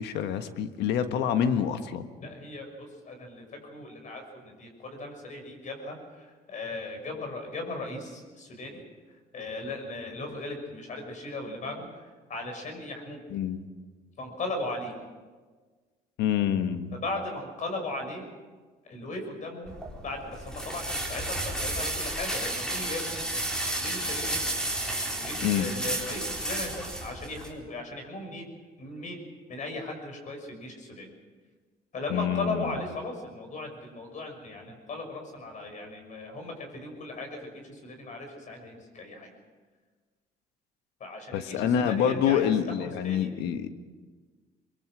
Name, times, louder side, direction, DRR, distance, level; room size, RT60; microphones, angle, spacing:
voice 1, 0.0-2.1 13.3-13.6 16.2-17.0 25.4-25.7 32.1-32.7 41.3-43.7, left 9 dB, 85° left, 9 dB, 1.5 m, -27 dB
voice 2, 2.2-8.8 9.3-11.8 12.3-13.2 14.2-14.9 16.9-18.2 18.8-19.7 20.0-23.2 23.8-24.4 25.1-28.5 28.8-29.2 29.5-31.1 31.9-39.3 41.0-42.5 42.8-43.3, left 2 dB, 45° left, 4 dB, 6.2 m, -37 dB
sound 1, 19.7-27.5, right 1 dB, 5° left, 4.3 m, -32 dB
23.0 x 23.0 x 6.3 m, 1.4 s
cardioid pair, 110°, 17 cm